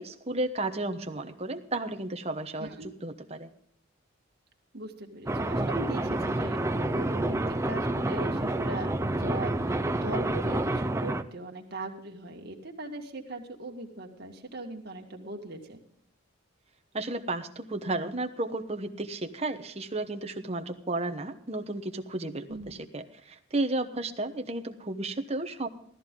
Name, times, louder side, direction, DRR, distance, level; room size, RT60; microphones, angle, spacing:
voice 1, 0.0-3.5 16.9-25.7, right 2 dB, 30° right, 7 dB, 1.0 m, -33 dB
voice 2, 4.7-15.8 22.5-22.7, right 2 dB, 50° right, 2 dB, 2.0 m, -39 dB
sound 1, 5.3-11.2, right 1 dB, 15° right, 0.5 m, -29 dB
15.0 x 13.5 x 3.7 m, 0.66 s
head